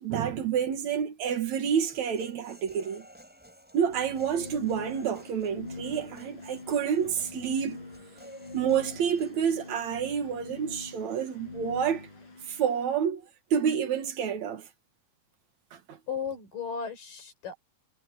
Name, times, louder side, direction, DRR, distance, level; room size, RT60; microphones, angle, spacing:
voice 1, 0.0-3.1 3.7-7.8 8.5-12.1 12.5-13.2 13.5-14.7 15.7-16.0, right 8 dB, 65° right, 2.7 m, -29 dB
Human voice, 1.7-9.7, equal, 5° right, 7.6 m, -52 dB
sound 1, 3.8-12.9, left 3 dB, 70° left, 9.3 m, -44 dB
voice 2, 16.1-17.6, left 7 dB, 90° left, 7.3 m, -35 dB
omnidirectional pair, 3.7 m